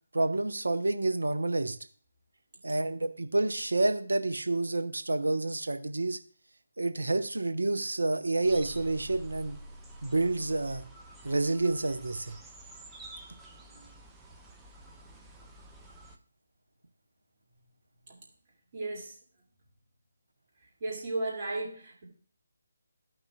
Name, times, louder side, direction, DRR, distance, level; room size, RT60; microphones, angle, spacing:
voice 1, 0.1-1.8 2.6-6.2 6.8-9.5 10.0-10.8 11.2-12.3, right 2 dB, 65° right, 10 dB, 0.7 m, -29 dB
sound 1, 8.4-16.2, right 1 dB, 5° right, 0.6 m, -48 dB
voice 2, 18.7-19.2 20.8-22.1, right 2 dB, 30° right, -2 dB, 2.2 m, -34 dB
14.5 x 5.9 x 2.2 m, 0.43 s
figure-of-eight pair, 145°, 0 cm